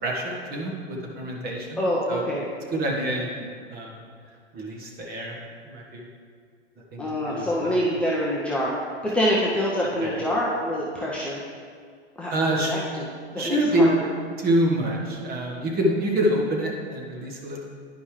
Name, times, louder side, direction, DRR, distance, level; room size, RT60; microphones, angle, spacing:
voice 1, 0.0-1.8 2.1-2.2 2.7-3.9 4.5-5.4 5.6-6.1 6.9-7.7 10.0-10.1 12.3-12.7 13.3-13.9 14.4-17.6, right 1 dB, 25° right, -1 dB, 1.4 m, -26 dB
voice 2, 1.8-2.5 7.0-8.7 9.0-11.4 12.2-13.0 13.3-14.0, equal, 5° left, -7 dB, 0.7 m, -26 dB
10.0 x 5.3 x 3.2 m, 2.1 s
hypercardioid pair, 110°, 34 cm